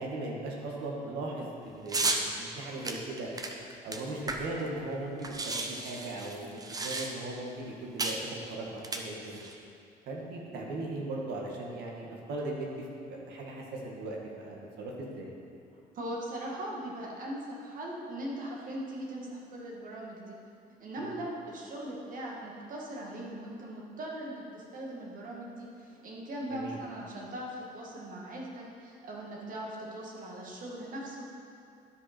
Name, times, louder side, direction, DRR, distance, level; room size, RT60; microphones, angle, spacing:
voice 1, 0.0-3.3 3.8-9.4 10.1-15.3 21.0-21.2 26.5-26.8, right 2 dB, 75° right, -1 dB, 1.7 m, -38 dB
sound 1, 1.9-2.2 2.8-4.7 4.9-5.0 5.2-7.4 8.0-8.2 8.8-9.5, right 3 dB, 20° right, 0.7 m, -33 dB
voice 2, 15.9-20.4 20.8-31.3, right 1 dB, 55° right, -3 dB, 2.0 m, -40 dB
12.0 x 5.2 x 4.4 m, 2.6 s
cardioid pair, 110°, 17 cm